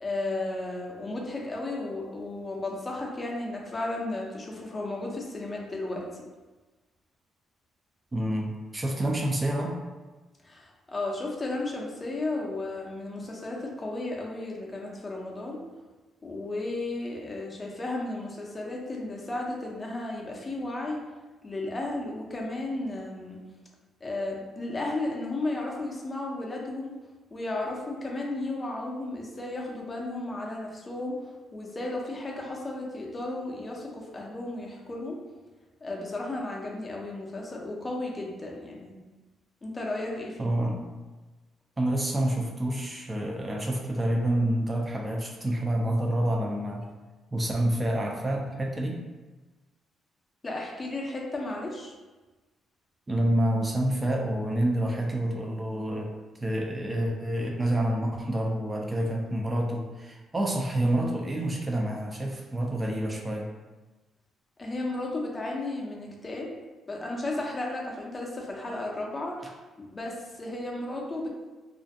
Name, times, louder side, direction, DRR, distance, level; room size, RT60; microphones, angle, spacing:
voice 1, 0.0-6.2 10.4-15.6 16.2-21.0 21.4-23.4 24.0-27.0 27.3-35.2 35.8-39.0 39.6-40.5 50.4-51.9 64.6-66.5 66.9-71.3, left 2 dB, 25° left, -2 dB, 0.5 m, -34 dB
voice 2, 8.1-9.8 40.4-40.8 41.8-46.9 47.3-49.1 53.1-56.1 56.4-63.5, right 1 dB, 20° right, 0 dB, 0.4 m, -28 dB
2.5 x 2.1 x 2.6 m, 1.2 s
cardioid pair, 90°, 0 cm